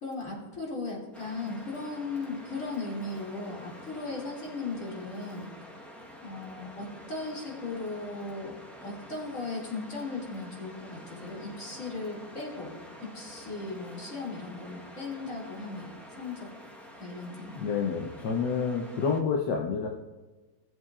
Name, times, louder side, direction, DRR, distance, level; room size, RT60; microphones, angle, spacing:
voice 1, 0.0-5.5 6.2-16.5 17.0-17.5, left 3 dB, 50° left, -4 dB, 2.9 m, -37 dB
Waves surf, 1.1-19.2, equal, ahead, 0.9 m, -48 dB
voice 2, 17.6-19.9, left 5 dB, 80° left, 1 dB, 1.5 m, -28 dB
18.5 x 7.8 x 2.4 m, 1.2 s
omnidirectional pair, 1.8 m